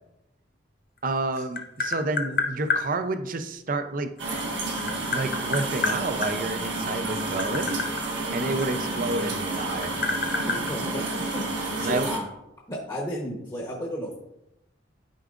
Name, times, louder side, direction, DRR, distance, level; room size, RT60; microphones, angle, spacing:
Tap, 1.0-2.8 4.2-6.3 7.1-9.2 9.5-11.5, left 4 dB, 50° left, 0.7 m, -29 dB
voice 1, 1.0-4.1 5.1-7.8 8.3-9.9 11.8-12.1, right 2 dB, 45° right, 8 dB, 0.5 m, -29 dB
voice 2, 1.9-2.3 10.5-11.0 11.3-12.2 12.7-14.1, equal, 20° left, -3 dB, 1.0 m, -34 dB
sound 1, 4.2-12.2, right 2 dB, 75° right, 1.5 m, -30 dB
11.5 x 4.7 x 2.5 m, 0.86 s
head